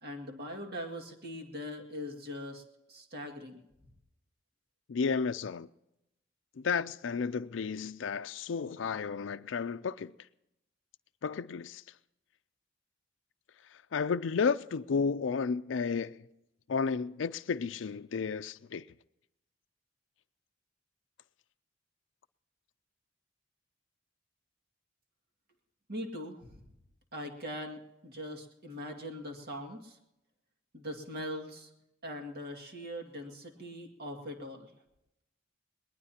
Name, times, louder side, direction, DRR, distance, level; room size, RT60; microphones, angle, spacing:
voice 1, 0.0-3.6 25.9-26.6 27.1-30.0 30.7-31.7 32.0-34.7, equal, 55° right, 2.1 m, -41 dB
voice 2, 4.9-5.7 6.6-10.1 11.2-11.8 13.7-16.2 16.7-18.8, left 5 dB, 75° left, 0.4 m, -32 dB
22.0 x 19.5 x 2.9 m
head